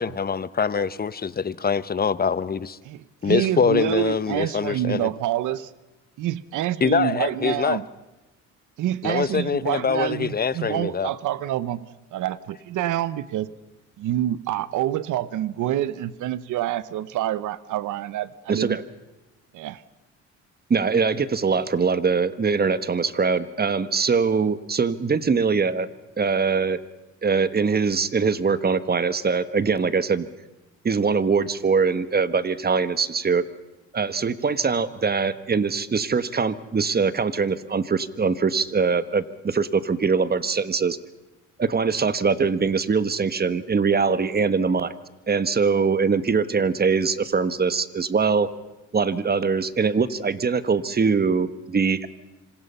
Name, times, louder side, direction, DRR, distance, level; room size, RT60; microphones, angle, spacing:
voice 1, 0.0-2.8 3.2-5.1 6.8-7.8 9.0-11.1, left 6 dB, 30° left, 16 dB, 1.0 m, -24 dB
voice 2, 2.8-5.7 6.2-7.9 8.8-13.5 14.0-18.8 19.5-19.8, right 13 dB, 85° right, 17 dB, 1.0 m, -27 dB
voice 3, 18.5-18.8 20.7-25.9 26.2-26.8 27.2-30.2 30.8-33.4 33.9-41.0 41.6-44.9 45.3-48.5 48.9-52.1, right 5 dB, 30° right, 13 dB, 1.4 m, -22 dB
26.5 x 26.0 x 5.7 m, 1.1 s
cardioid pair, 90°, 30 cm